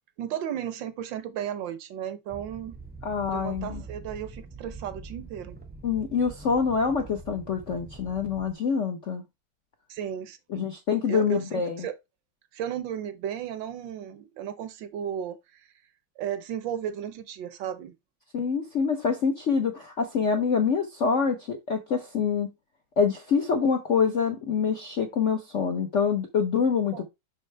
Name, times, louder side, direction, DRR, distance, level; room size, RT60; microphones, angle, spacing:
voice 1, 0.2-2.8 3.3-5.6 9.9-10.7 11.1-12.0 12.5-15.4 16.2-17.9 26.9-27.0, right 9 dB, 70° right, 1.3 m, -34 dB
sound 1, 2.3-8.5, right 4 dB, 10° right, 0.5 m, -44 dB
voice 2, 3.0-3.8 5.8-9.2 10.5-11.9 18.3-22.5 23.0-27.0, left 6 dB, 60° left, 0.7 m, -26 dB
6.4 x 5.6 x 3.3 m
omnidirectional pair, 2.4 m